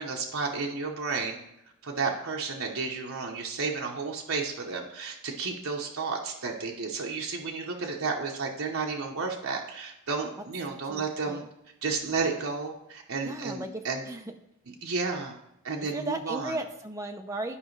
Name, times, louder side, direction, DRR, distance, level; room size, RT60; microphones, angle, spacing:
voice 1, 0.0-1.4 1.8-11.4 11.8-14.0 14.8-15.3 15.6-16.5, right 4 dB, 70° right, 0 dB, 0.9 m, -32 dB
voice 2, 10.8-11.5 13.2-14.2 15.8-17.6, right 2 dB, 15° right, 4 dB, 0.6 m, -36 dB
11.5 x 5.0 x 3.2 m, 0.83 s
head